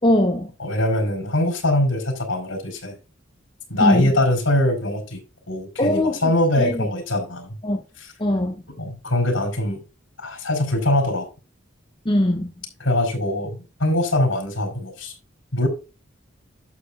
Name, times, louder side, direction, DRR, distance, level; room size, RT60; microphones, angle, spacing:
voice 1, 0.0-0.5 3.8-4.1 5.8-6.3 6.6-6.9 7.6-7.8 8.2-8.6 12.0-12.5, left 1 dB, 25° left, 1.0 m, -21 dB
voice 2, 0.6-3.0 3.7-5.2 5.5-7.6 8.8-9.8 10.2-11.3 12.8-15.1 15.5-15.7, left 1 dB, 80° left, 4.6 m, -22 dB
12.0 x 8.5 x 2.5 m
head